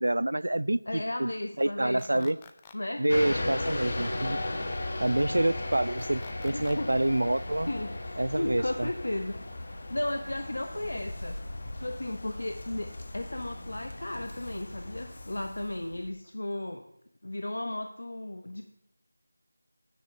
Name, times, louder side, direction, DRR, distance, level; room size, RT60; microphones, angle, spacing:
voice 1, 0.0-1.3 1.6-2.4 3.0-4.4 5.0-7.7 8.2-8.9, right 1 dB, 75° right, 0.3 m, -27 dB
voice 2, 0.9-2.3 2.7-3.1 6.5-6.9 7.7-7.9 8.3-9.5 9.9-11.4 11.7-16.8 17.2-18.6, left 1 dB, 70° left, 0.9 m, -35 dB
sound 1, 2.0-2.8 6.0-6.8, left 7 dB, 15° left, 0.4 m, -51 dB
sound 2, 3.1-16.1, left 1 dB, 45° left, 1.3 m, -37 dB
9.9 x 5.3 x 7.6 m
figure-of-eight pair, 170°, 0 cm